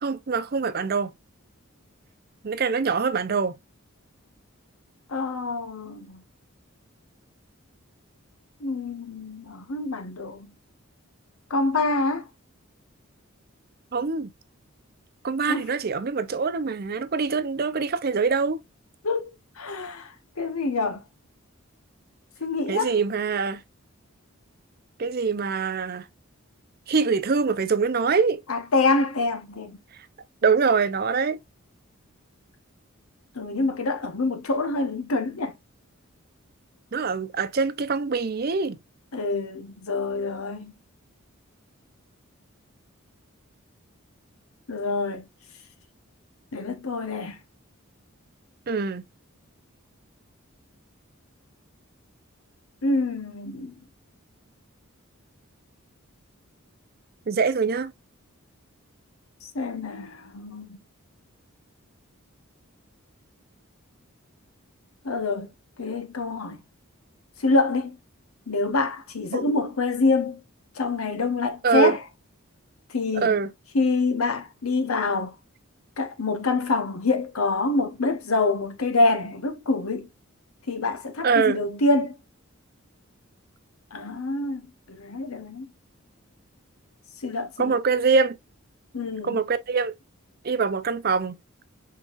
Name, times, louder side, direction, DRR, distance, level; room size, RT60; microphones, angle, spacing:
voice 1, 0.0-1.1 2.4-3.5 13.9-14.3 15.2-18.6 22.7-23.6 25.0-26.0 26.9-28.4 30.4-31.4 36.9-38.8 48.7-49.0 57.3-57.9 69.3-69.4 71.6-71.9 73.1-73.5 81.2-81.6 87.6-88.4 89.2-89.9 90.4-91.4, right 5 dB, 45° right, 0.5 m, -24 dB
voice 2, 5.1-6.2 8.6-10.5 11.5-12.3 15.5-15.7 19.0-19.3 19.6-21.0 22.4-22.9 28.5-29.8 33.3-35.5 39.1-40.7 44.7-45.3 46.5-47.4 52.8-53.8 59.4-60.8 65.0-65.5 65.8-66.6 67.4-68.0 68.5-70.4 70.7-72.0 72.9-73.4 73.7-75.3 76.0-80.1 80.7-82.1 83.9-84.6 84.9-85.7 87.2-87.8 88.9-89.4, left 3 dB, 85° left, 1.0 m, -26 dB
5.4 x 3.7 x 2.4 m
head